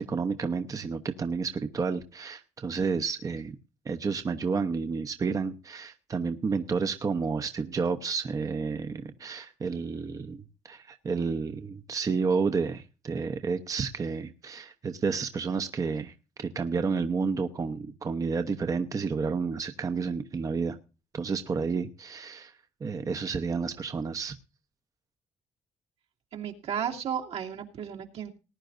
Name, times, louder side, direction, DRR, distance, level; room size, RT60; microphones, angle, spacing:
voice 1, 0.0-3.5 3.9-16.1 16.4-20.8 21.1-22.5 22.8-24.3, right 5 dB, 30° right, 8 dB, 0.9 m, -30 dB
voice 2, 26.3-28.3, right 8 dB, 70° right, 1 dB, 2.4 m, -34 dB
19.5 x 10.5 x 2.6 m, 0.32 s
cardioid pair, 110°, 11 cm